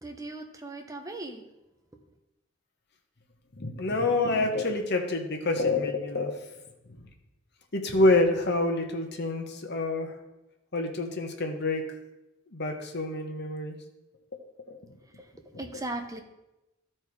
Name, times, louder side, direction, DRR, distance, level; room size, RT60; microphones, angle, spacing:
voice 1, 0.0-1.4 15.5-16.2, right 2 dB, 15° right, 5 dB, 0.8 m, -37 dB
voice 2, 3.6-6.3 7.7-10.1 10.7-11.8 12.5-13.8 14.7-14.8 15.5-15.8, left 2 dB, 50° left, 4 dB, 1.1 m, -27 dB
12.5 x 4.4 x 4.7 m, 0.97 s
head